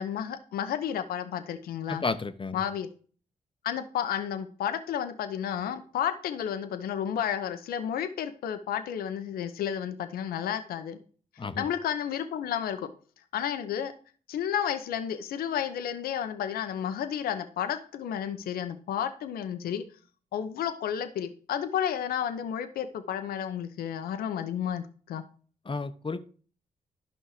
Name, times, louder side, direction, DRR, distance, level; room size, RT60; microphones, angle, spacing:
voice 1, 0.0-2.0 2.5-2.9 3.6-11.0 11.6-12.9 13.3-13.9 14.3-19.8 20.3-25.2, left 9 dB, 75° left, 0.9 m, -32 dB
voice 2, 1.9-2.6 11.4-11.6 25.7-26.3, left 4 dB, 35° left, 1.0 m, -32 dB
11.5 x 5.5 x 4.9 m
hypercardioid pair, 40°, 16 cm